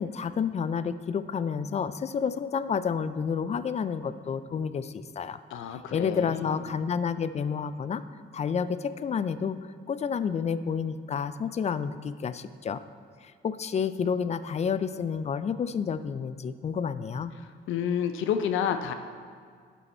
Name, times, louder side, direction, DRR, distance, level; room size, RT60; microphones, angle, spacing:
voice 1, 0.0-5.4 5.9-8.0 8.3-9.6 9.9-12.8 13.2-17.3, left 6 dB, 35° left, 14 dB, 0.4 m, -30 dB
voice 2, 5.5-6.5 17.7-18.9, left 8 dB, 80° left, 8 dB, 0.6 m, -29 dB
11.0 x 5.5 x 4.2 m, 2.1 s
cardioid pair, 90°, 20 cm